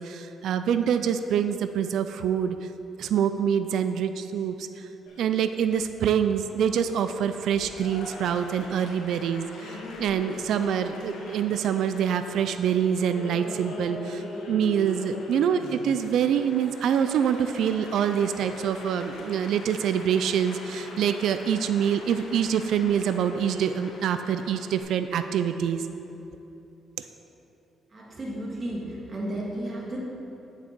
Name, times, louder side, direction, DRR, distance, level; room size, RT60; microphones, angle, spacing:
voice 1, 0.0-2.7 3.0-4.8 5.2-25.8 27.0-27.1, right 8 dB, 75° right, 9 dB, 0.3 m, -25 dB
Applause, 5.1-24.8, left 2 dB, 85° left, 1.1 m, -41 dB
voice 2, 27.9-30.0, right 1 dB, 40° right, -3 dB, 2.0 m, -33 dB
8.5 x 6.6 x 4.6 m, 2.9 s
cardioid pair, 90°, 0 cm